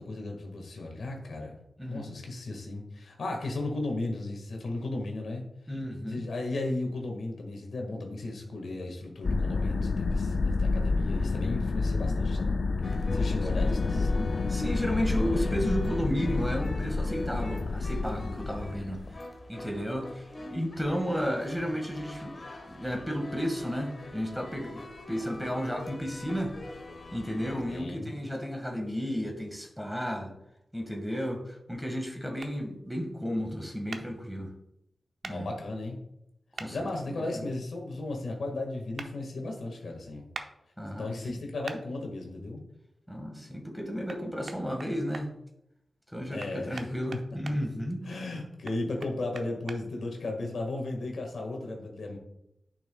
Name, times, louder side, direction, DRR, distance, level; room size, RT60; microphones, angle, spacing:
voice 1, 0.0-1.5 1.9-5.4 6.1-12.5 13.1-14.4 27.7-28.1 35.3-36.0 36.7-40.2 40.9-42.6 46.3-46.8 48.0-52.2, left 2 dB, 85° left, 1 dB, 1.7 m, -35 dB
voice 2, 1.8-2.1 5.7-6.2 11.8-11.9 13.1-13.5 13.7-13.9 14.5-19.0 19.5-22.3 22.7-26.5 27.1-30.3 30.7-34.5 35.2-35.5 36.6-36.8 37.0-37.4 40.8-41.5 43.1-45.3 46.1-48.0, equal, ahead, 2 dB, 1.7 m, -33 dB
sound 1, 9.2-19.2, left 3 dB, 65° left, 0.3 m, -29 dB
sound 2, 12.8-27.8, left 1 dB, 45° left, 1.2 m, -43 dB
sound 3, 32.4-32.5 33.9-34.0 35.2-35.4 36.6-36.7 39.0-39.1 40.3-40.5 41.7-41.8 44.1-44.2 44.5-45.3 46.4-47.6 48.7-49.8, right 4 dB, 80° right, 0.6 m, -41 dB
10.5 x 5.9 x 2.3 m, 0.82 s
wide cardioid pair, 80°, 0 cm